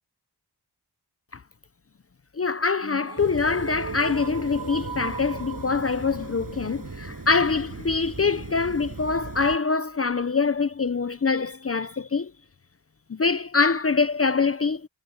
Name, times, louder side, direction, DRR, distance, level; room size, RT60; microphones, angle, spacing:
voice 1, 2.4-12.3 13.1-14.9, left 4 dB, 35° left, 0.6 m, -24 dB
sound 1, 2.8-8.8, right 6 dB, 70° right, 1.3 m, -40 dB
sound 2, 3.2-9.6, right 4 dB, 55° right, 6.8 m, -38 dB
wide cardioid pair, 95°, 41 cm